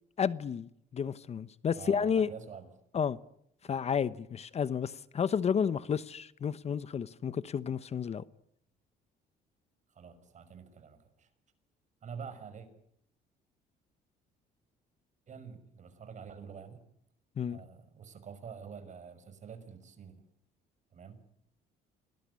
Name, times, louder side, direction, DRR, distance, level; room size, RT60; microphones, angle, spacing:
voice 1, 0.2-2.3 2.9-3.2 3.6-8.2 17.4-17.6, left 7 dB, 40° left, 1.0 m, -31 dB
voice 2, 1.8-2.7 3.6-3.8 9.9-11.3 12.0-12.7 15.3-16.8 17.5-20.2 20.9-21.2, right 6 dB, 45° right, 6.0 m, -47 dB
28.0 x 20.0 x 9.7 m
cardioid pair, 110°, 17 cm